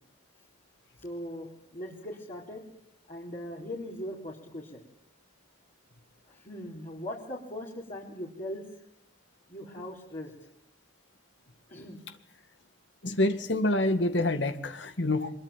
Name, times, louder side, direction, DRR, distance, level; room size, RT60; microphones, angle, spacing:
voice 1, 1.0-2.6 3.1-4.8 6.3-8.6 9.5-10.3 11.7-12.0, left 1 dB, 45° left, -4 dB, 4.2 m, -40 dB
voice 2, 13.0-15.3, left 1 dB, 85° left, 9 dB, 2.0 m, -27 dB
24.5 x 22.5 x 9.1 m, 0.72 s
head